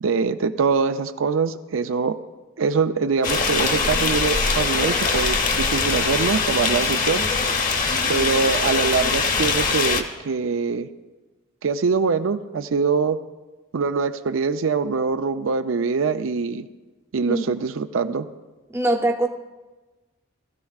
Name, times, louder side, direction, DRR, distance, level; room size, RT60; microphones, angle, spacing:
voice 1, 0.0-2.2 2.6-7.3 8.1-10.9 11.6-13.2 13.7-16.7 17.1-18.3, right 5 dB, 85° right, 9 dB, 0.5 m, -23 dB
sound 1, 3.2-10.0, left 4 dB, 40° left, 0.9 m, -22 dB
voice 2, 18.7-19.3, right 1 dB, 15° right, 4 dB, 0.6 m, -22 dB
19.5 x 14.0 x 2.4 m, 1.2 s
head